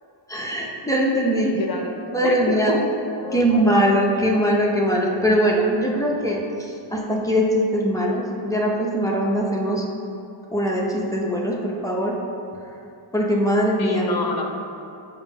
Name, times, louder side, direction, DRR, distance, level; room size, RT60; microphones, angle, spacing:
voice 1, 0.3-1.5 2.1-2.7 3.3-9.8 10.5-12.1 13.1-14.0, equal, 5° left, -3 dB, 0.6 m, -21 dB
voice 2, 1.4-2.8 3.2-3.8 4.1-4.3 13.8-14.4, left 3 dB, 45° left, 3 dB, 0.7 m, -28 dB
7.1 x 2.7 x 5.3 m, 2.8 s
wide cardioid pair, 135°, 50 cm